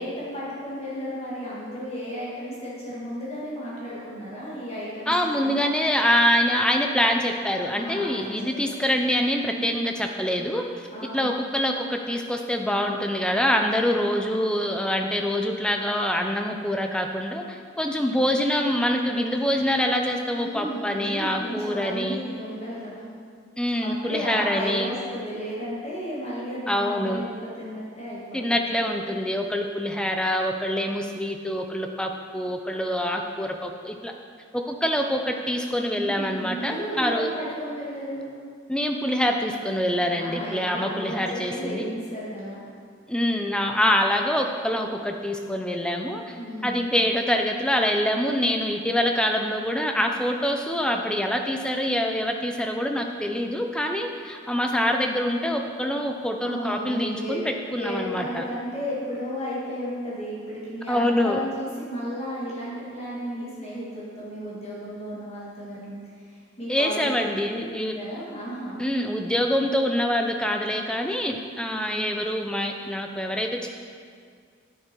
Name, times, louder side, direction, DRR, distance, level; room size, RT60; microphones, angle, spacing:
voice 1, 0.0-5.6 7.7-8.9 9.5-9.9 10.9-11.3 20.4-23.1 23.8-28.7 35.9-38.3 40.1-42.6 46.4-46.9 56.4-57.4 57.7-67.1 67.6-68.8 71.7-72.0, equal, 30° left, -7 dB, 1.9 m, -34 dB
voice 2, 5.1-10.9 11.1-22.2 23.6-24.9 26.7-27.2 28.3-34.1 34.5-37.3 38.7-41.9 43.1-46.4 46.6-58.4 60.9-61.4 66.7-67.9 68.8-73.7, equal, 5° left, 3 dB, 0.5 m, -25 dB
9.4 x 7.2 x 4.5 m, 2.1 s
head